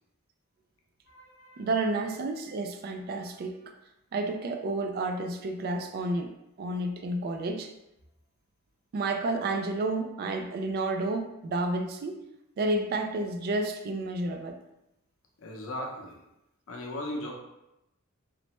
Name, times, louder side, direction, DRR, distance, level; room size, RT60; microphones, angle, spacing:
voice 1, 1.1-1.9 15.4-16.2 16.7-17.3, left 1 dB, 75° left, 0 dB, 0.6 m, -38 dB
voice 2, 1.6-3.6 4.1-6.3 6.6-7.7 8.9-12.2 12.6-14.6, right 2 dB, 50° right, 5 dB, 0.3 m, -30 dB
3.1 x 2.0 x 2.9 m, 0.88 s
head